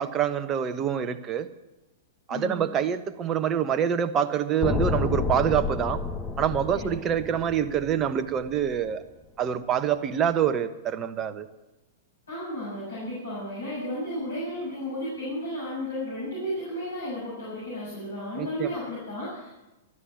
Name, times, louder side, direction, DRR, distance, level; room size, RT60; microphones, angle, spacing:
voice 1, 0.0-1.5 2.3-6.0 6.4-9.0 9.4-11.5 18.4-18.7, right 9 dB, 25° right, 10 dB, 1.1 m, -26 dB
voice 2, 2.3-2.7 6.7-7.0 12.3-19.5, equal, 75° left, -7 dB, 6.8 m, -33 dB
sound 1, 4.6-8.8, left 4 dB, 15° left, 0.9 m, -30 dB
13.5 x 12.5 x 7.6 m, 1.0 s
figure-of-eight pair, 100°, 0 cm